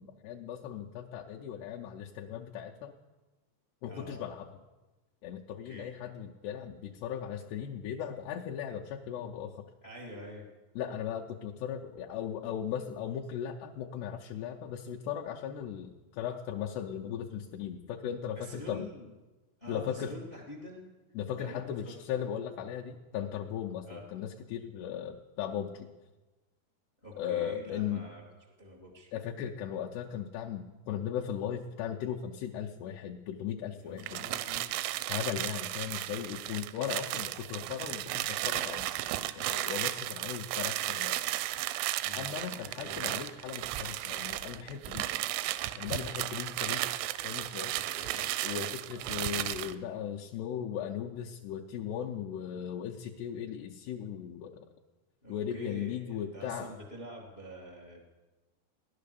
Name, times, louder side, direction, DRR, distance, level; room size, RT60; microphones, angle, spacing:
voice 1, 0.0-2.9 3.8-4.5 5.2-9.6 10.8-18.9 19.7-20.1 21.2-25.9 27.2-28.0 29.1-34.2 35.1-38.9 39.4-41.2 42.1-45.1 45.8-46.9 47.2-47.7 48.4-54.6 55.3-56.7, left 9 dB, 80° left, -1 dB, 2.4 m, -37 dB
voice 2, 3.9-4.2 5.6-5.9 9.8-10.4 18.3-19.1 19.6-20.8 21.3-22.0 23.8-24.0 27.0-28.2 28.6-29.1 33.8-34.7 37.2-37.3 42.0-42.3 42.8-43.0 47.7-48.7 55.2-58.0, left 1 dB, 45° left, -1 dB, 0.7 m, -46 dB
sound 1, 34.0-49.8, right 15 dB, 85° right, 3.1 m, -34 dB
17.0 x 11.0 x 6.8 m, 1.2 s
omnidirectional pair, 5.5 m